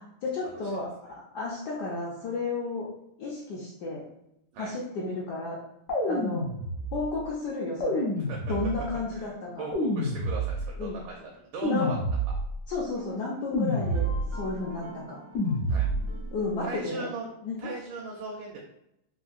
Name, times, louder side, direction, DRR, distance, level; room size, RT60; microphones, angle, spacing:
voice 1, 0.0-2.9 3.2-4.0 4.6-5.6 6.1-6.4 6.9-8.1 8.5-9.7 10.8-11.0 11.6-11.9 12.7-15.2 16.3-17.1 17.4-17.7, left 3 dB, 70° left, -4 dB, 1.0 m, -33 dB
sound 1, 5.9-7.1 7.8-9.0 9.7-10.8 11.6-12.6 13.5-14.5 15.3-16.2, equal, 85° left, 0.6 m, -28 dB
voice 2, 8.2-8.5 9.1-9.3 9.6-12.0 15.7-15.9 16.6-17.3 17.6-18.6, right 3 dB, 85° right, -2 dB, 1.5 m, -38 dB
sound 2, 8.9-11.3 12.8-16.6, right 1 dB, 70° right, 0.8 m, -48 dB
3.6 x 2.5 x 2.4 m, 0.79 s
omnidirectional pair, 2.2 m